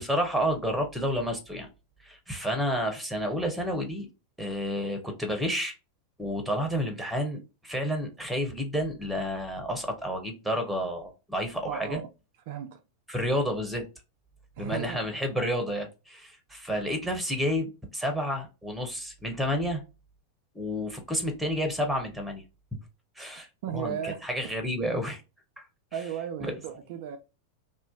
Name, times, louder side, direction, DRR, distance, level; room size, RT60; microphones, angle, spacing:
voice 1, 0.0-1.7 2.0-4.1 4.4-5.7 6.2-12.0 13.1-13.8 14.6-19.8 20.5-22.4 23.2-23.5 23.7-25.2 25.6-25.7 26.4-26.6, equal, 5° right, 0.7 m, -30 dB
voice 2, 11.7-12.1 12.5-12.8 14.6-15.0 23.4-24.3 25.9-27.2, right 9 dB, 50° right, 0.3 m, -35 dB
2.4 x 2.1 x 2.4 m
figure-of-eight pair, 90°, 0 cm